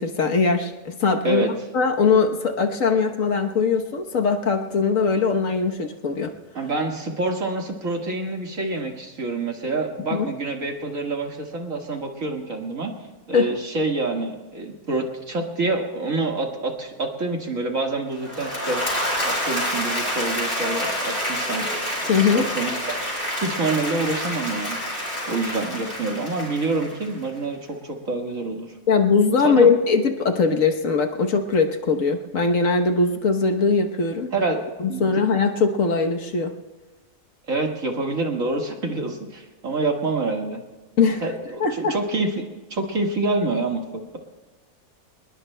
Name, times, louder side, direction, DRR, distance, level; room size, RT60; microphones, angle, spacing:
voice 1, 0.0-6.3 10.1-10.3 13.3-13.5 22.1-22.4 28.9-34.3 34.8-36.5 41.0-41.2 41.6-41.9, left 4 dB, 60° left, 4 dB, 1.4 m, -21 dB
voice 2, 6.6-12.9 13.3-18.8 19.2-21.7 22.0-24.8 25.3-28.7 29.4-29.7 34.3-34.6 34.9-35.1 37.5-40.6 41.2-43.8, right 2 dB, 60° right, 2 dB, 2.2 m, -27 dB
Applause / Crowd, 18.2-27.3, equal, 35° left, 6.1 m, -28 dB
25.0 x 20.5 x 2.2 m, 1.3 s
omnidirectional pair, 1.6 m